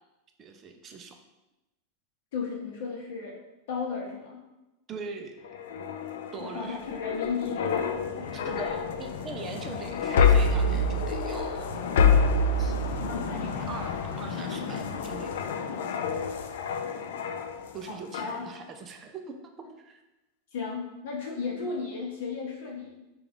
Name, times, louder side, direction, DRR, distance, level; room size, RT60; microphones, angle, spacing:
voice 1, 0.4-1.2 4.9-5.5 6.3-6.8 8.3-12.3 12.6-12.7 13.1-13.2 13.4-15.4 17.7-20.0, right 4 dB, 20° right, 4 dB, 0.3 m, -42 dB
voice 2, 2.3-3.3 3.7-4.4 6.1-8.3 13.1-13.7 17.9-18.4 20.5-23.0, left 5 dB, 60° left, -2 dB, 0.8 m, -35 dB
sound 1, 5.4-17.8 18.1-18.4, left 4 dB, 80° left, 0.4 m, -27 dB
5.0 x 2.3 x 3.5 m, 0.98 s
supercardioid pair, 175°, 0 cm